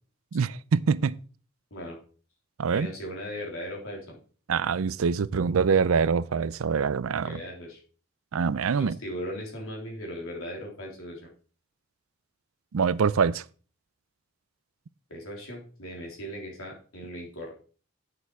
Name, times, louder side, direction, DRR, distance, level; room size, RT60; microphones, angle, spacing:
voice 1, 0.3-1.2 2.6-2.9 4.5-7.4 8.3-9.0 12.7-13.4, right 5 dB, 80° right, 0.5 m, -25 dB
voice 2, 2.7-4.2 7.2-7.8 8.7-11.3 15.1-17.5, equal, 85° left, 3.6 m, -38 dB
9.3 x 6.8 x 4.7 m
head